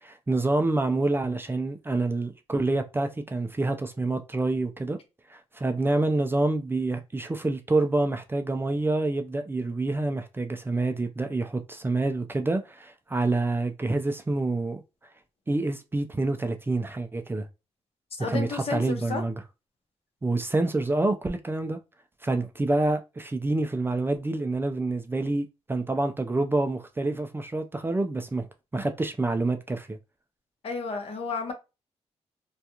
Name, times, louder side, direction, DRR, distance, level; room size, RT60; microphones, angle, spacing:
voice 1, 0.0-5.0 5.3-14.8 15.5-17.5 18.2-19.3 20.2-21.8 22.2-28.5 28.7-30.0, right 2 dB, 20° right, 0.4 m, -27 dB
voice 2, 18.2-19.2 30.6-31.5, left 4 dB, 60° left, 0.9 m, -32 dB
2.3 x 2.3 x 2.8 m
cardioid pair, 80°, 11 cm